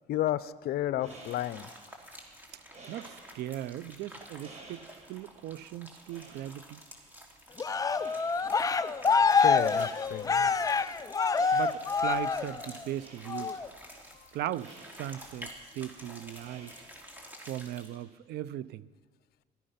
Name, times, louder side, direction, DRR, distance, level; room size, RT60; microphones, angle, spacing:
voice 1, 0.1-1.7 9.3-10.5, left 13 dB, 65° left, 0.6 m, -32 dB
sound 1, 0.8-17.4, right 2 dB, 40° right, 5.4 m, -55 dB
sound 2, 1.1-18.0, equal, 10° right, 3.1 m, -50 dB
voice 2, 2.9-4.8 5.1-6.8 11.5-13.5 14.3-15.5 15.8-16.7 17.4-18.9, right 13 dB, 75° right, 0.6 m, -38 dB
Cheering, 7.6-12.8 13.3-13.7, left 5 dB, 20° left, 0.5 m, -26 dB
18.0 x 13.0 x 5.8 m
cardioid pair, 110°, 17 cm